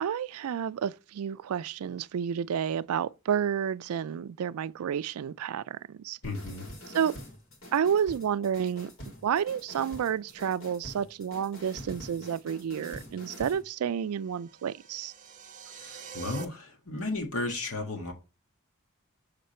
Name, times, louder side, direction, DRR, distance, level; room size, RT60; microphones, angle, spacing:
voice 1, 0.0-6.2 6.9-7.1 7.7-8.9 9.2-15.1, right 8 dB, 85° right, 0.3 m, -30 dB
voice 2, 6.2-6.7 15.7-18.1, left 2 dB, 85° left, 1.7 m, -34 dB
sound 1, 6.2-13.6, equal, 65° left, 2.2 m, -46 dB
sound 2, 13.9-16.4, right 6 dB, 35° right, 1.0 m, -46 dB
6.9 x 3.7 x 4.3 m
head